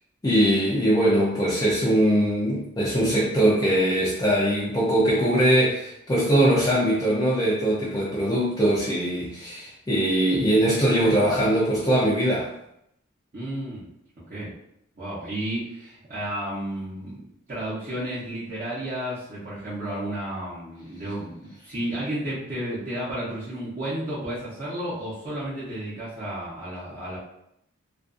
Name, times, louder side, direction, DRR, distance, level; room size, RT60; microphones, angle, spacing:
voice 1, 0.2-12.5, right 1 dB, 20° left, -6 dB, 0.4 m, -21 dB
voice 2, 13.3-13.9 14.3-14.5 15.0-17.2 17.5-27.2, right 1 dB, 40° right, -11 dB, 0.7 m, -32 dB
2.5 x 2.3 x 2.4 m, 0.77 s
head